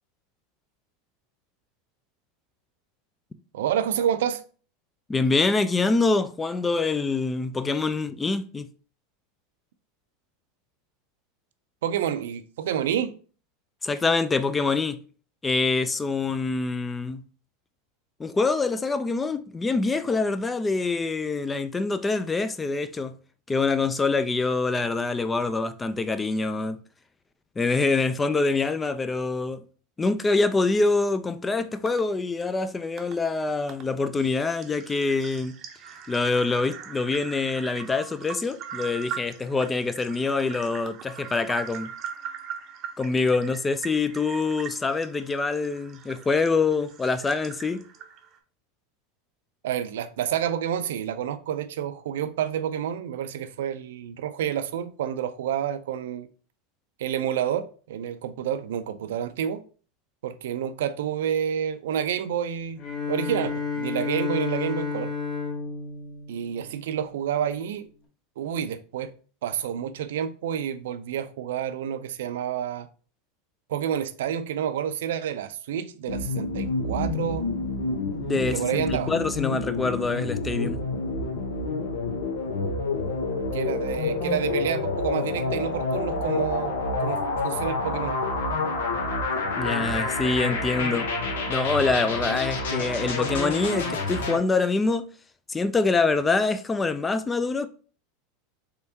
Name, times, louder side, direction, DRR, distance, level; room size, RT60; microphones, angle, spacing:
voice 1, 3.5-4.4 11.8-13.1 49.6-56.3 57.0-59.6 60.2-62.8 63.1-65.1 66.3-67.9 68.4-69.1 69.4-72.9 73.7-77.5 78.5-79.1 83.5-88.2, right 9 dB, 85° right, 0.4 m, -29 dB
voice 2, 5.1-8.7 13.8-15.0 15.4-17.2 18.2-23.1 23.5-26.8 27.6-29.6 30.0-35.6 36.1-41.9 43.0-47.8 78.1-80.8 89.6-91.1 91.5-95.1 95.5-97.7, left 3 dB, 15° left, 0.3 m, -25 dB
sound 1, 31.9-32.0 33.0-33.1 33.7-33.8 34.2-48.4, right 8 dB, 40° right, 0.6 m, -41 dB
Bowed string instrument, 62.8-67.2, left 5 dB, 35° left, 1.0 m, -31 dB
sound 2, 76.1-94.4, left 3 dB, 85° left, 0.8 m, -28 dB
3.5 x 3.4 x 2.8 m
supercardioid pair, 120°, 0 cm